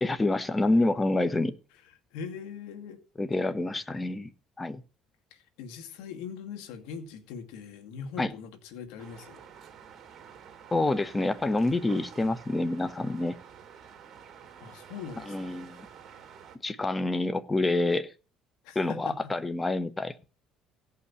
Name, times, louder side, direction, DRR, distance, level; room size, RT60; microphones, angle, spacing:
voice 1, 0.0-1.5 3.2-4.3 4.6-4.8 8.2-8.3 10.7-13.4 15.3-15.8 16.6-18.1 18.7-20.2, left 2 dB, 15° left, 1.3 m, -27 dB
voice 2, 2.1-3.0 5.3-9.4 14.6-15.5 18.6-19.3, left 6 dB, 85° left, 2.2 m, -41 dB
sound 1, 9.0-16.6, right 8 dB, 45° right, 2.9 m, -49 dB
16.5 x 5.7 x 7.1 m
supercardioid pair, 90°, 0 cm